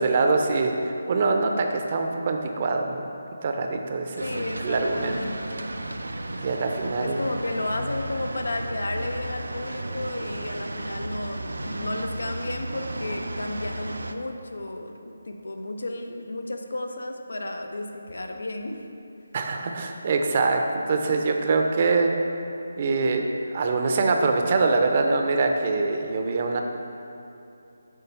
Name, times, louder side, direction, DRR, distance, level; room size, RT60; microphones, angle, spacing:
voice 1, 0.0-3.1 3.4-4.2 4.6-5.2 6.3-7.2 19.3-22.1 22.8-26.6, right 3 dB, 35° right, 4 dB, 0.6 m, -24 dB
voice 2, 4.2-5.7 7.0-18.8, left 2 dB, 80° left, 5 dB, 0.7 m, -33 dB
sound 1, 4.2-14.1, right 1 dB, 85° right, 0.5 m, -34 dB
8.4 x 3.3 x 5.6 m, 2.8 s
figure-of-eight pair, 165°, 0 cm